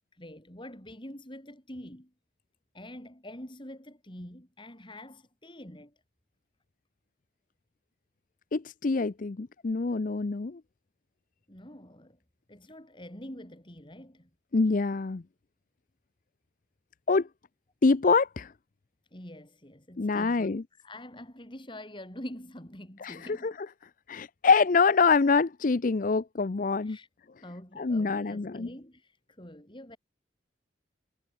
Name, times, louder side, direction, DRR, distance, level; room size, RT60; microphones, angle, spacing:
voice 1, 0.1-2.1 2.7-5.9 11.5-12.2 12.5-14.3 19.1-23.5 26.8-27.1 27.4-30.0, left 1 dB, 25° left, 4.8 m, -45 dB
voice 2, 8.5-10.6 14.5-15.2 17.1-17.3 17.8-18.5 20.0-20.6 23.0-23.5 24.1-27.0 27.8-28.7, left 4 dB, 45° left, 0.5 m, -25 dB
head